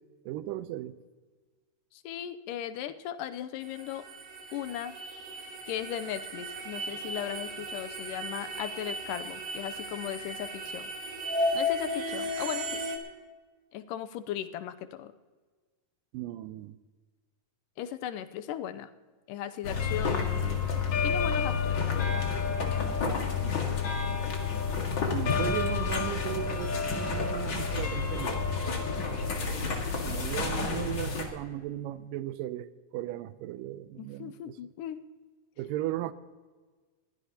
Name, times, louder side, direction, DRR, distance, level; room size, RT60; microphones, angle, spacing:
voice 1, 0.3-1.0 16.1-16.8 22.8-22.9 23.4-23.6 25.1-28.4 29.2-29.3 30.1-34.6 35.6-36.1, right 14 dB, 90° right, 14 dB, 2.3 m, -36 dB
voice 2, 1.9-4.1 4.5-5.0 5.7-10.9 11.5-12.8 13.7-15.1 17.8-18.9 19.3-20.6 21.0-22.2 24.9-25.6 34.0-35.0, left 11 dB, 85° left, 11 dB, 2.3 m, -37 dB
sound 1, 3.6-13.0, equal, 70° right, 2.9 m, -35 dB
sound 2, 19.6-31.2, left 5 dB, 40° left, 2.1 m, -29 dB
21.5 x 15.5 x 2.9 m, 1.4 s
omnidirectional pair, 3.8 m